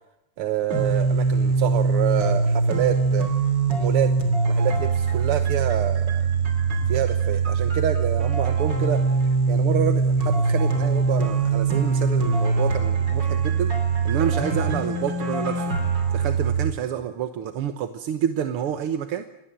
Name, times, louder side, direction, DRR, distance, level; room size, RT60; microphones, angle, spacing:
voice 1, 0.4-3.3 3.7-4.1 4.5-6.2 6.9-13.7 14.0-15.7 16.1-19.2, right 10 dB, 85° right, 8 dB, 2.0 m, -28 dB
sound 1, 0.7-16.7, right 4 dB, 55° right, 3.6 m, -22 dB
26.5 x 19.5 x 7.5 m, 0.89 s
omnidirectional pair, 2.4 m